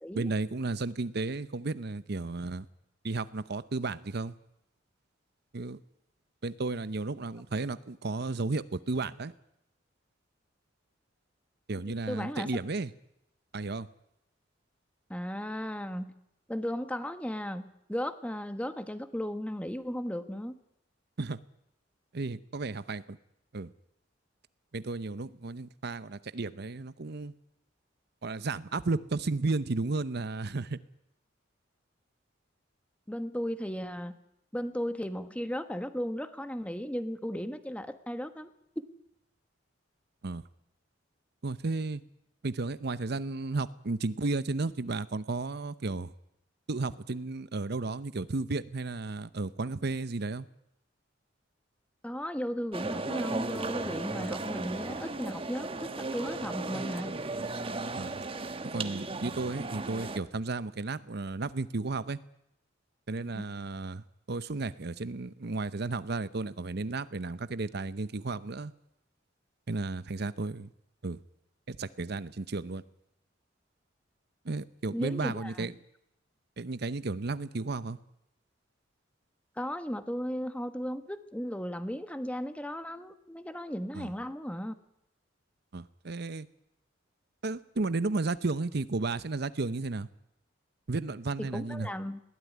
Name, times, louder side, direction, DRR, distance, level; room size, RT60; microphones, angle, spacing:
voice 1, 0.1-2.7 3.0-4.4 5.5-5.8 6.4-9.3 11.7-12.9 13.5-13.9 21.2-21.4 22.1-23.2 23.5-23.7 24.7-27.3 28.2-30.8 40.2-40.4 41.4-42.0 42.4-46.1 46.7-50.5 58.0-58.2 58.7-62.2 63.1-68.7 69.7-70.7 71.0-71.2 71.7-72.8 74.4-75.7 76.6-78.0 83.9-84.1 85.7-86.5 87.4-90.1 90.9-91.9, right 3 dB, 60° right, 15 dB, 0.8 m, -33 dB
voice 2, 12.1-12.5 15.1-16.1 16.5-20.6 33.1-34.1 34.5-38.5 52.0-57.2 63.3-63.5 74.9-75.7 79.6-84.7 91.4-92.2, equal, 5° left, 10 dB, 1.4 m, -35 dB
sound 1, 52.7-60.2, right 3 dB, 30° right, 1.3 m, -36 dB
21.5 x 17.0 x 9.4 m, 0.80 s
head